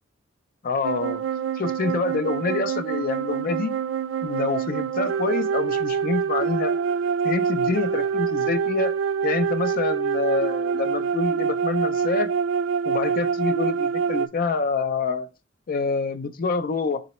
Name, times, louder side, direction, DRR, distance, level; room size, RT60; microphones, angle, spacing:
voice 1, 0.6-1.2 1.5-3.7 4.2-6.7 7.2-9.0 9.2-12.3 12.9-15.3 15.7-17.0, left 4 dB, 45° left, 0.4 m, -26 dB
sound 1, 0.8-14.3, right 6 dB, 65° right, 0.3 m, -25 dB
3.9 x 2.9 x 4.2 m
head